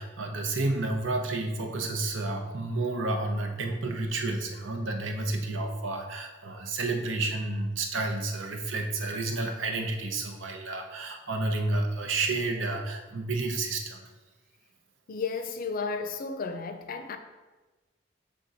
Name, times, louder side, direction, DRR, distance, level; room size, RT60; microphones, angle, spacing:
voice 1, 0.0-14.0, right 2 dB, 90° right, 0.8 m, -30 dB
voice 2, 15.1-17.2, left 4 dB, 50° left, 0.5 m, -33 dB
6.9 x 3.8 x 4.0 m
head